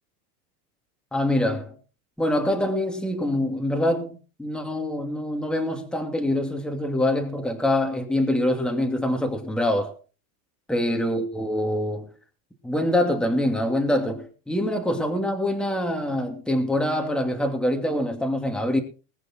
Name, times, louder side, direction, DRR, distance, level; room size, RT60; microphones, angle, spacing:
voice 1, 1.1-1.7 2.2-9.9 10.7-12.1 12.6-18.8, left 1 dB, ahead, 2.7 m, -25 dB
20.0 x 9.1 x 4.6 m
supercardioid pair, 140°, 49 cm